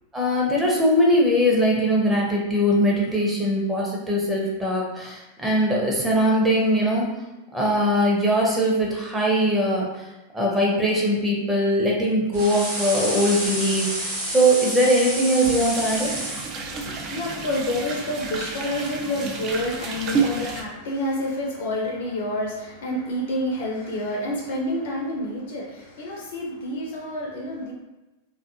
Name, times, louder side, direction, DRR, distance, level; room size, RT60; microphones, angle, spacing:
voice 1, 0.1-7.1 7.5-10.1 10.3-16.1, equal, 10° right, -3 dB, 0.7 m, -21 dB
sound 1, 12.3-16.5, right 1 dB, 55° right, 1.1 m, -29 dB
sound 2, 15.4-20.6, right 5 dB, 35° right, 0.4 m, -30 dB
voice 2, 16.7-27.7, left 1 dB, 55° left, -2 dB, 0.5 m, -28 dB
2.5 x 2.4 x 2.6 m, 1.0 s
figure-of-eight pair, 90°, 0 cm